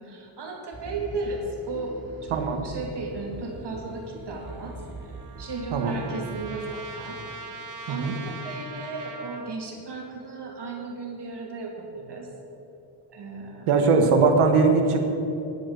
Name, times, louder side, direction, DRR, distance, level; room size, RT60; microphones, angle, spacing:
voice 1, 0.0-2.0 2.2-4.8 5.4-7.2 7.9-12.3 13.1-13.9, right 3 dB, 55° right, 0 dB, 2.8 m, -35 dB
sound 1, 0.7-7.7 8.2-8.3, right 2 dB, 20° right, 3.3 m, -42 dB
voice 2, 2.3-2.6 5.7-6.0 7.9-8.1 13.7-15.1, right 4 dB, 85° right, 5 dB, 1.7 m, -20 dB
Trumpet, 4.4-9.6, right 3 dB, 40° right, 1.4 m, -41 dB
11.0 x 10.0 x 6.7 m, 2.9 s
cardioid pair, 90°, 49 cm